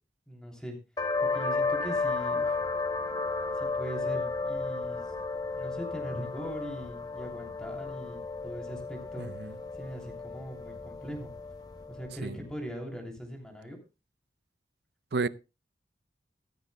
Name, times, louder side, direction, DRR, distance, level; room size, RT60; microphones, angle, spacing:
voice 1, 0.3-0.8 1.2-2.6 3.6-5.1 5.6-9.3 9.8-11.3 11.9-13.8, equal, 5° left, 3.0 m, -41 dB
sound 1, 1.0-12.3, left 3 dB, 20° left, 1.1 m, -33 dB
voice 2, 9.2-9.5 12.2-12.3 15.1-15.3, right 4 dB, 65° right, 0.6 m, -31 dB
14.5 x 13.5 x 2.2 m
head